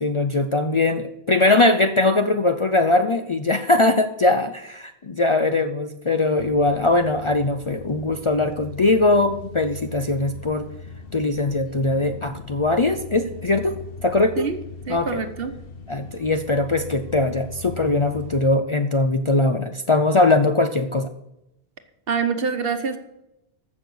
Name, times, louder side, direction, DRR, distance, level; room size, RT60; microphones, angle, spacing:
voice 1, 0.0-10.7 11.1-13.7 14.0-14.5 14.9-15.2 15.9-21.1, left 2 dB, 40° left, 8 dB, 0.5 m, -21 dB
sound 1, 6.4-18.4, left 4 dB, 65° left, 1.0 m, -39 dB
voice 2, 14.9-15.5 22.1-23.0, right 5 dB, 65° right, 9 dB, 1.3 m, -25 dB
14.5 x 6.5 x 6.3 m, 0.85 s
omnidirectional pair, 1.1 m